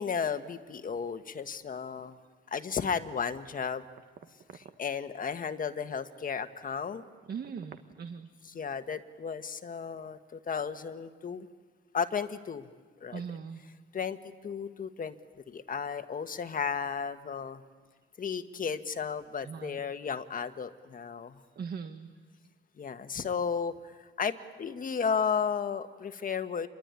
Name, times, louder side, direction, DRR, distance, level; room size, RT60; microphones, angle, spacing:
voice 1, 0.0-2.2 2.5-3.8 4.5-7.0 8.4-11.5 11.9-12.7 13.0-13.2 13.9-14.2 14.4-15.1 15.5-17.6 18.2-21.4 22.8-26.7, left 6 dB, 45° left, 9 dB, 1.5 m, -34 dB
voice 2, 7.3-8.3 13.1-13.6 19.4-19.8 21.6-22.1, right 6 dB, 50° right, 8 dB, 1.4 m, -39 dB
27.0 x 22.5 x 9.7 m, 1.5 s
cardioid pair, 90°, 20 cm